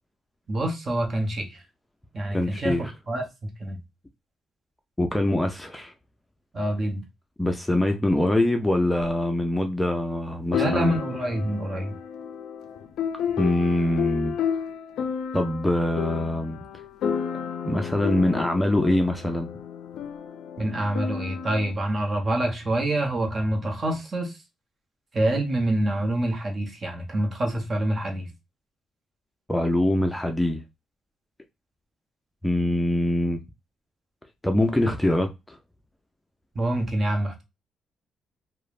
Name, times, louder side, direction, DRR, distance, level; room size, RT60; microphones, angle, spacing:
voice 1, 0.5-1.6 2.1-3.8 6.5-7.0 10.5-11.9 20.6-24.4 25.1-28.3 36.5-37.4, right 1 dB, 35° right, 0.9 m, -26 dB
voice 2, 2.3-2.8 5.0-5.9 7.4-11.0 13.4-14.4 15.3-16.6 17.6-19.5 29.5-30.6 32.4-33.4 34.4-35.6, left 1 dB, 10° left, 0.4 m, -24 dB
sound 1, 9.0-9.1 10.5-21.7, left 8 dB, 80° left, 0.4 m, -31 dB
3.0 x 2.0 x 2.3 m
cardioid pair, 90°, 0 cm